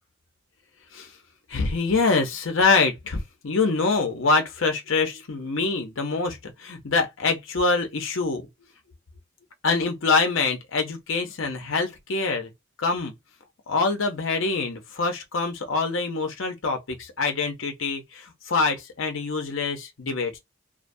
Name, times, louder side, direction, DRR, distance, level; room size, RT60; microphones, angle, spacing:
voice 1, 1.5-8.5 9.6-12.5 12.8-13.1 13.7-20.4, left 4 dB, 75° left, 0.7 m, -25 dB
2.4 x 2.2 x 2.6 m
head